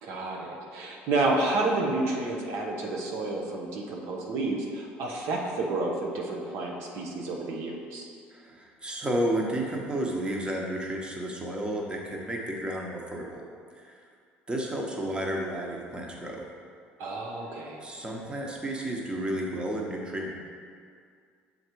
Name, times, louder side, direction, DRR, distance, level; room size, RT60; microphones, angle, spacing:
voice 1, 0.0-8.1 17.0-17.8, right 2 dB, 70° right, -1 dB, 0.9 m, -30 dB
voice 2, 8.3-13.4 13.7-14.0 14.5-16.4 17.8-20.3, right 1 dB, 20° right, -1 dB, 1.1 m, -32 dB
6.6 x 4.0 x 4.6 m, 2.2 s
supercardioid pair, 85°, 5 cm